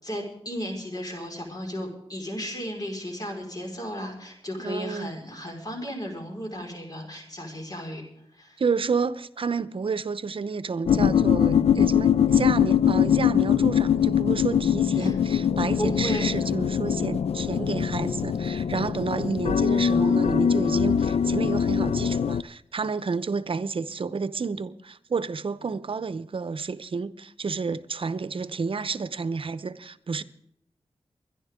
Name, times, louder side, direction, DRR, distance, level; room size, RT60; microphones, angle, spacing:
voice 1, 0.0-8.0 8.3-8.6 15.0-15.1 15.8-16.3, equal, 40° left, 5.1 m, -34 dB
voice 2, 4.6-5.1 8.6-30.2, right 5 dB, 60° right, 0.8 m, -30 dB
sound 1, 10.9-22.4, left 8 dB, 80° left, 0.5 m, -22 dB
24.0 x 11.0 x 3.7 m
wide cardioid pair, 85°, 10 cm